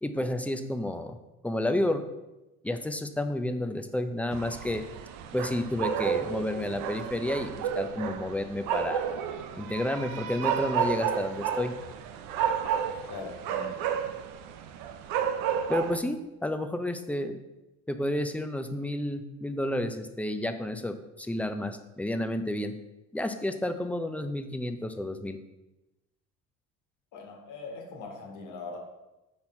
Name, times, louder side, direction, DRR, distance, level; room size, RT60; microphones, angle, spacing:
voice 1, 0.0-1.2 1.4-2.0 2.6-4.9 5.3-9.1 9.6-11.7 15.7-17.4 17.9-22.7 23.1-25.4, left 1 dB, 5° left, 8 dB, 0.4 m, -31 dB
sound 1, 4.3-16.0, right 8 dB, 70° right, 0.6 m, -31 dB
voice 2, 13.1-13.8 27.1-28.8, left 3 dB, 60° left, 2 dB, 1.5 m, -41 dB
5.6 x 4.4 x 4.4 m, 1.0 s
supercardioid pair, 90°, 33 cm